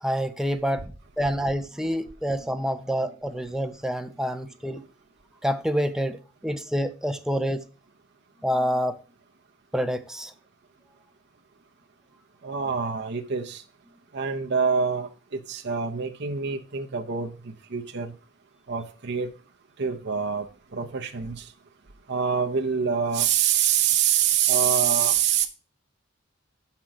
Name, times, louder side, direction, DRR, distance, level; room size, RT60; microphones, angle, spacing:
voice 1, 0.0-4.8 5.4-7.7 8.4-9.0 9.7-10.3, equal, 5° right, 0.6 m, -27 dB
voice 2, 12.4-13.6 14.1-17.3 17.7-18.1 18.7-19.3 19.8-21.4 22.1-25.5, right 7 dB, 60° right, 0.7 m, -25 dB
6.3 x 5.8 x 5.8 m
head